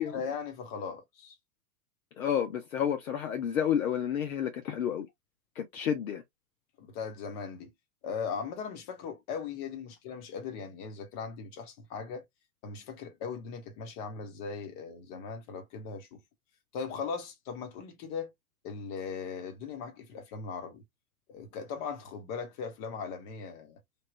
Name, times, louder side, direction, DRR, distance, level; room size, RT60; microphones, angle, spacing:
voice 1, 0.0-1.4 6.8-7.7 8.0-12.2 12.6-16.2 16.7-18.3 18.6-20.8 21.3-23.8, left 5 dB, 35° left, 1.3 m, -39 dB
voice 2, 2.2-5.1 5.6-6.2, left 9 dB, 60° left, 0.9 m, -30 dB
3.5 x 2.6 x 2.5 m
figure-of-eight pair, 100°, 45 cm